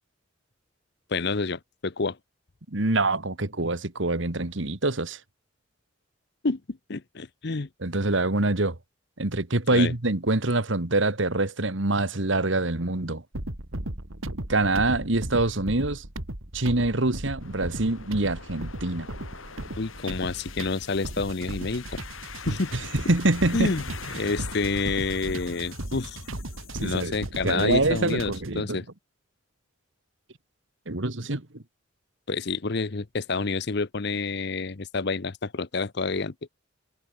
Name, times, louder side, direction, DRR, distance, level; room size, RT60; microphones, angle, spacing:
voice 1, 1.1-2.2 6.4-7.7 9.7-9.9 19.8-22.0 22.5-22.7 23.0-23.1 23.5-23.8 24.1-26.2 26.8-28.8 32.3-36.3, left 4 dB, 55° left, 0.8 m, -28 dB
voice 2, 2.7-5.2 7.8-8.8 9.2-13.2 14.5-16.0 16.5-19.1 22.5-23.7 26.7-27.2 27.4-28.8 30.9-31.6, right 2 dB, 65° right, 1.8 m, -25 dB
sound 1, 13.3-28.6, right 1 dB, 80° right, 3.1 m, -36 dB
sound 2, 17.4-27.1, left 5 dB, 75° left, 3.9 m, -44 dB
head